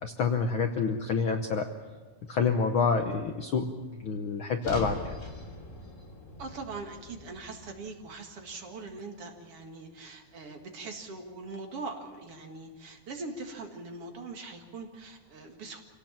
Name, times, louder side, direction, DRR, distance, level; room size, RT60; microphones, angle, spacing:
voice 1, 0.0-1.7 2.3-3.7 4.0-5.1, left 5 dB, 85° left, 6 dB, 1.1 m, -27 dB
sound 1, 4.6-8.9, left 1 dB, 25° left, 3.1 m, -43 dB
voice 2, 6.4-15.8, right 3 dB, 50° right, 3 dB, 2.6 m, -42 dB
26.5 x 18.0 x 7.4 m, 1.4 s
omnidirectional pair, 3.8 m